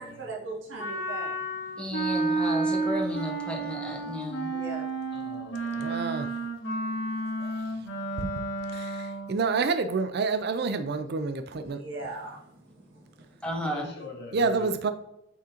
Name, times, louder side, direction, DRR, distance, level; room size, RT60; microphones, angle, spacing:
voice 1, 0.2-1.4 4.5-4.9 7.4-8.2 11.7-13.4, right 3 dB, 80° right, 1.8 m, -40 dB
Wind instrument woodwind instrument, 0.8-9.4, right 2 dB, 90° left, 2.4 m, -31 dB
voice 2, 1.8-4.5 13.4-13.9, equal, 5° left, 1.2 m, -33 dB
voice 3, 5.1-6.0 13.6-14.7, left 2 dB, 60° left, 1.9 m, -43 dB
voice 4, 5.8-6.3 8.2-8.4 8.7-11.8 14.3-14.9, right 4 dB, 60° right, 0.4 m, -28 dB
9.2 x 3.7 x 2.8 m
head